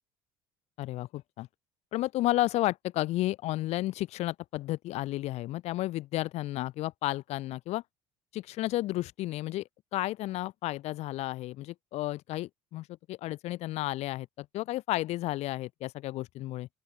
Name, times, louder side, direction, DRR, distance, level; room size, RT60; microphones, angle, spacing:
voice 1, 0.8-1.5 1.9-7.8 8.3-9.6 9.9-16.7, left 16 dB, 65° left, 3.4 m, -32 dB
open air
supercardioid pair, 75°, 12 cm